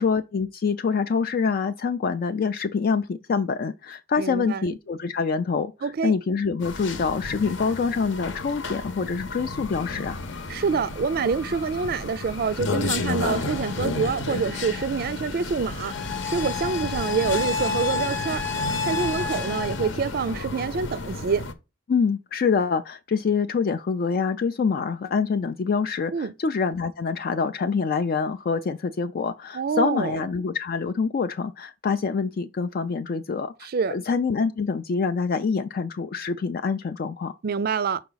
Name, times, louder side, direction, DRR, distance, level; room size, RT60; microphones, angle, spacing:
voice 1, 0.0-10.2 21.9-37.3, left 5 dB, 50° left, 0.4 m, -26 dB
voice 2, 4.2-4.7 5.8-6.1 10.5-15.9 16.2-18.4 18.8-21.4 26.1-26.3 29.5-30.3 33.6-34.0 37.4-38.0, right 5 dB, 50° right, 0.4 m, -26 dB
sound 1, 6.6-21.5, left 3 dB, 70° left, 0.9 m, -30 dB
5.7 x 4.7 x 4.0 m
head